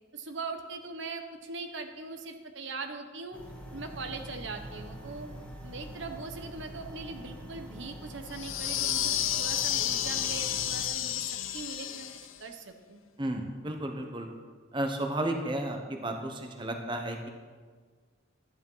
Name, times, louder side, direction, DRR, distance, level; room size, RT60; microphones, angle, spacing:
voice 1, 0.1-3.4 3.7-5.3 5.6-12.1 12.4-13.3, right 3 dB, 60° right, 5 dB, 1.1 m, -41 dB
sound 1, 3.3-10.8, right 1 dB, 5° left, 1.8 m, -45 dB
sound 2, 8.3-12.4, left 11 dB, 75° left, 0.7 m, -31 dB
voice 2, 13.2-14.3 14.7-17.3, right 1 dB, 25° right, 3 dB, 1.1 m, -33 dB
12.5 x 10.5 x 5.6 m, 1.5 s
head